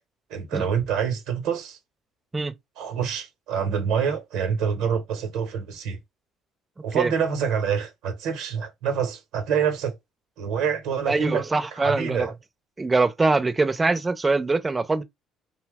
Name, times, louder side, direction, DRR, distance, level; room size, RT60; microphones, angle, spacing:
voice 1, 0.3-1.8 2.8-6.0 6.8-10.0 10.4-12.3, right 7 dB, 75° right, 0.8 m, -26 dB
voice 2, 11.1-12.3 12.8-15.0, right 3 dB, 25° right, 0.6 m, -23 dB
2.8 x 2.1 x 3.4 m
hypercardioid pair, 60°, 0 cm